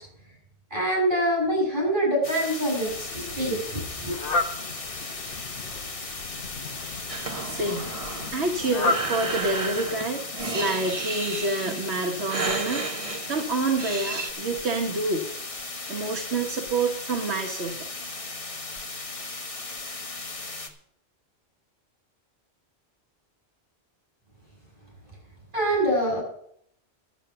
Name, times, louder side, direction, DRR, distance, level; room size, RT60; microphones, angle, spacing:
voice 1, 0.7-4.1 25.5-26.2, right 1 dB, 50° right, -2 dB, 6.8 m, -25 dB
sound 1, 2.2-20.7, left 3 dB, 30° left, 1.2 m, -37 dB
Fowl, 2.7-10.1, left 3 dB, 60° left, 1.1 m, -34 dB
Breathing, 7.1-14.3, right 3 dB, 35° right, 1.2 m, -33 dB
voice 2, 7.4-7.9 8.3-10.2 10.5-12.9 13.3-15.3 15.9-17.9, right 2 dB, 85° right, 1 dB, 1.5 m, -27 dB
12.0 x 8.3 x 6.7 m, 0.67 s
omnidirectional pair, 1.1 m